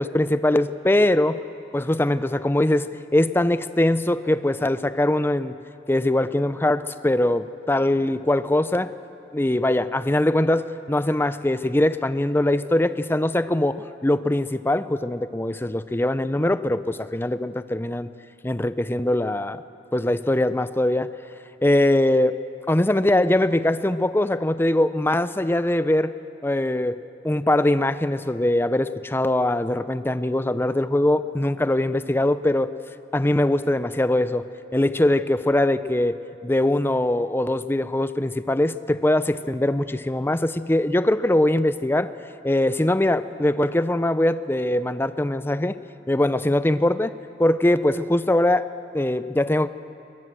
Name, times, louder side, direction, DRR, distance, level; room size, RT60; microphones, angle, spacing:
voice 1, 0.0-1.4 1.7-5.5 5.9-8.9 9.3-18.1 18.4-19.6 19.9-21.1 21.6-22.4 22.7-26.1 26.4-32.7 33.1-34.5 34.7-36.2 36.4-42.1 42.4-45.8 46.1-47.1 47.4-48.7 48.9-49.7, left 1 dB, 10° left, 13 dB, 0.5 m, -22 dB
21.5 x 21.0 x 7.6 m, 2.6 s
head